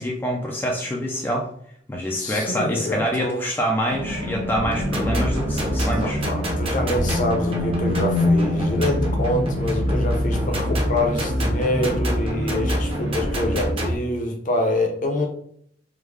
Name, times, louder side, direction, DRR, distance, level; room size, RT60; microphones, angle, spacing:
voice 1, 0.0-1.5 1.9-6.2, equal, 10° left, -1 dB, 0.4 m, -26 dB
voice 2, 2.2-3.4 5.8-15.3, left 1 dB, 45° left, 2 dB, 0.7 m, -26 dB
sound 1, 3.9-13.7, left 1 dB, 85° right, 0.9 m, -28 dB
sound 2, 4.6-14.0, equal, 30° right, 0.7 m, -25 dB
3.6 x 2.2 x 3.1 m, 0.65 s
head